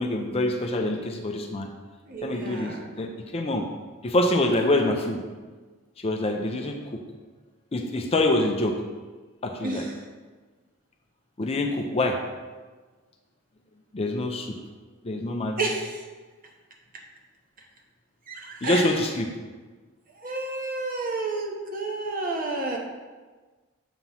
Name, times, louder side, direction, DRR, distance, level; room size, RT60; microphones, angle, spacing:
voice 1, 0.0-1.7 2.2-3.7 4.0-5.2 6.0-7.0 7.7-8.8 9.4-9.8 11.4-12.2 13.9-14.5 15.0-15.6 18.6-19.3, left 1 dB, 30° left, 3 dB, 0.4 m, -25 dB
voice 2, 2.1-2.9 9.6-10.0 15.6-16.1 18.3-18.9 20.1-22.8, right 2 dB, 40° right, 0 dB, 0.9 m, -30 dB
6.9 x 3.0 x 5.4 m, 1.3 s
head